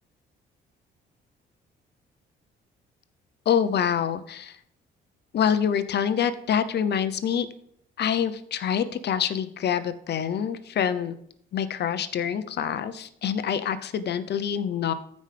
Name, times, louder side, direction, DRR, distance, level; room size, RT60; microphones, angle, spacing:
voice 1, 3.5-4.6 5.3-7.5 8.0-11.1 11.5-14.9, left 8 dB, 60° left, 12 dB, 0.8 m, -26 dB
15.0 x 5.2 x 3.4 m, 0.70 s
cardioid pair, 90°, 20 cm